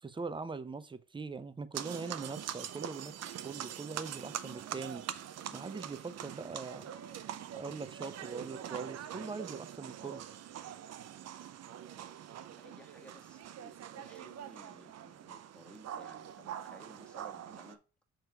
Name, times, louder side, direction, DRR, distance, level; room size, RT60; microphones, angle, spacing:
voice 1, 0.0-5.0 5.5-6.9 7.5-10.2, right 4 dB, 15° right, 0.6 m, -42 dB
sound 1, 1.7-17.7, right 10 dB, 55° right, 0.6 m, -44 dB
voice 2, 12.5-17.8, equal, 5° left, 1.6 m, -57 dB
6.8 x 3.1 x 4.6 m
cardioid pair, 90°, 30 cm